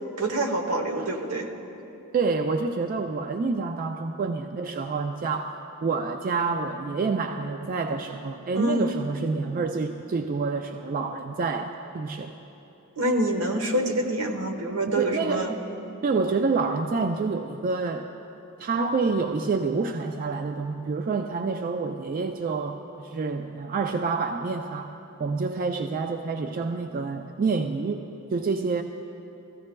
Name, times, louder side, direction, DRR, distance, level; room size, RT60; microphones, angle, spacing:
voice 1, 0.2-1.5 8.5-8.9 13.0-15.6, right 1 dB, 80° right, 4 dB, 1.0 m, -26 dB
voice 2, 2.1-5.5 5.8-12.3 14.9-15.6 16.0-18.1 18.6-28.8, right 4 dB, 40° right, 6 dB, 0.3 m, -28 dB
15.5 x 14.5 x 2.2 m, 2.9 s
head